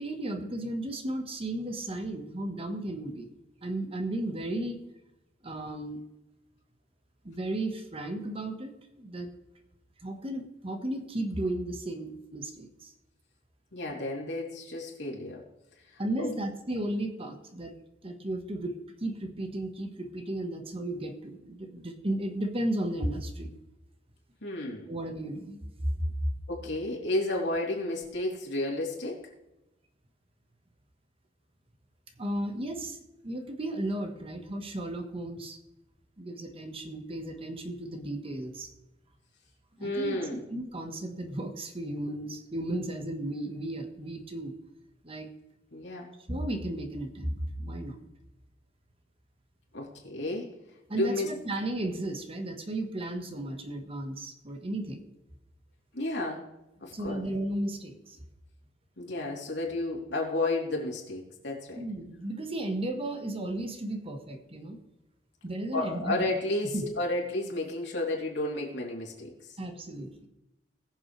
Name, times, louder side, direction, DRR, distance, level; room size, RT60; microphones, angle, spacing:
voice 1, 0.0-3.3 3.6-4.8 5.4-6.0 7.2-9.3 10.0-12.9 16.0-17.7 18.0-23.5 24.9-26.1 32.2-33.0 33.2-35.6 36.2-38.7 39.8-44.6 45.0-45.3 46.3-48.0 50.9-55.1 56.9-58.2 61.8-64.8 65.4-66.3 66.7-66.9 69.6-70.3, right 1 dB, 30° right, 5 dB, 1.3 m, -34 dB
voice 2, 13.7-15.4 15.9-16.3 24.4-24.9 26.5-29.3 39.8-40.4 45.7-46.1 49.7-50.5 50.9-51.3 55.9-56.5 56.8-57.2 59.0-61.8 65.7-69.3, left 2 dB, 70° left, -2 dB, 3.3 m, -32 dB
20.5 x 7.2 x 3.2 m, 0.95 s
head